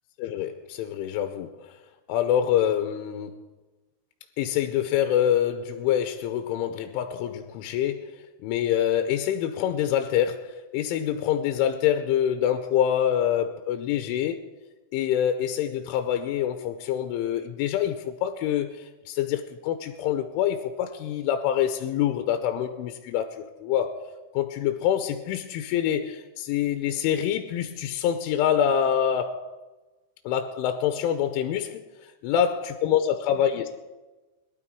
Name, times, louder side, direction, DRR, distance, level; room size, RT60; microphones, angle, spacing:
voice 1, 0.2-1.5 2.1-3.4 4.4-14.4 14.9-24.0 24.3-29.4 30.3-33.7, left 10 dB, 90° left, 3.2 m, -26 dB
22.0 x 12.5 x 4.7 m
omnidirectional pair, 5.6 m